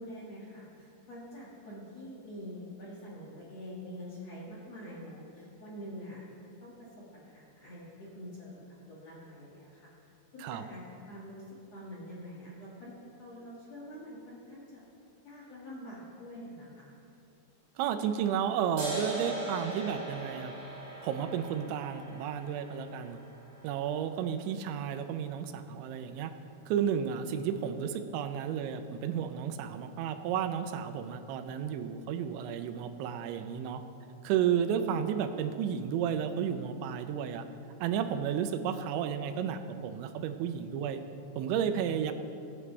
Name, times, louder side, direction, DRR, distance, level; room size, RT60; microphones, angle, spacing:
voice 1, 0.0-6.2 6.6-9.9 10.3-11.5 11.7-14.8 15.2-16.9, equal, 45° left, -6 dB, 2.4 m, -46 dB
voice 2, 17.8-20.5 21.0-23.2 23.6-26.3 26.7-33.8 34.2-37.5 37.8-41.0 41.4-42.1, right 8 dB, 90° right, 8 dB, 3.0 m, -32 dB
sound 1, 18.8-25.7, right 2 dB, 40° right, 3.6 m, -41 dB
21.0 x 9.7 x 3.3 m, 2.7 s
omnidirectional pair, 5.2 m